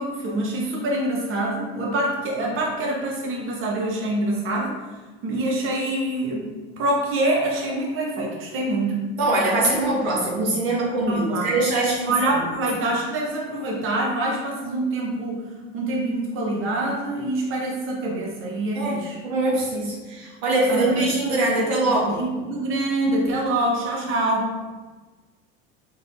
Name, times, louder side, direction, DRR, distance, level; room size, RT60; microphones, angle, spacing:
voice 1, 0.0-4.7 5.2-6.5 6.8-9.0 11.1-11.5 12.1-15.4 15.7-19.2 20.7-21.0 21.9-24.5, right 1 dB, 40° right, -1 dB, 0.9 m, -25 dB
voice 2, 9.2-12.4 18.7-19.0 19.2-22.2, right 2 dB, 80° right, -4 dB, 1.4 m, -22 dB
4.0 x 3.9 x 2.6 m, 1.3 s
hypercardioid pair, 85°, 32 cm